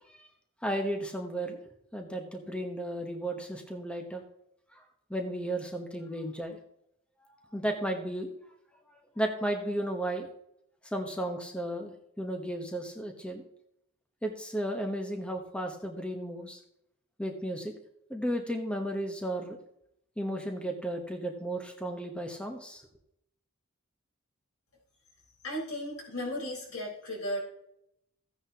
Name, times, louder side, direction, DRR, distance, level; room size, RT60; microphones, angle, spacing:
voice 1, 0.6-1.6 1.9-4.2 4.7-4.8 5.1-6.6 7.5-8.3 9.2-10.3 10.9-13.4 14.2-16.6 17.2-17.7 18.1-19.6 20.2-22.8, right 1 dB, 5° left, 3 dB, 1.0 m, -34 dB
voice 2, 25.4-27.4, equal, 85° left, -2 dB, 4.3 m, -35 dB
15.0 x 9.6 x 2.9 m, 0.77 s
head